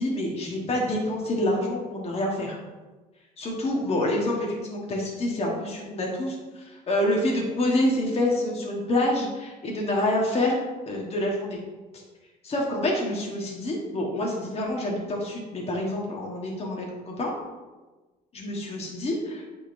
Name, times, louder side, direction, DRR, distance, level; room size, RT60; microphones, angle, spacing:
voice 1, 0.0-2.6 3.4-10.6 10.8-11.6 12.4-17.3 18.3-19.1, left 1 dB, 35° left, -2 dB, 1.3 m, -27 dB
9.2 x 3.8 x 2.6 m, 1.2 s
cardioid pair, 110°, 17 cm